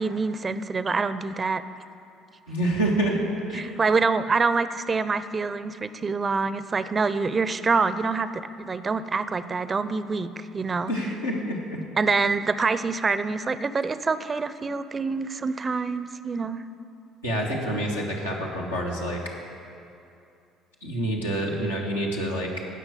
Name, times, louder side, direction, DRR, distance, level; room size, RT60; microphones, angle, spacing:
voice 1, 0.0-1.6 3.5-10.9 12.0-16.6, right 4 dB, 30° right, 13 dB, 0.6 m, -26 dB
voice 2, 2.5-3.2 3.5-3.7 10.9-11.8 17.2-19.2 20.8-22.5, right 1 dB, 90° left, -4 dB, 1.9 m, -27 dB
16.0 x 6.2 x 8.6 m, 2.6 s
figure-of-eight pair, 55°, 0 cm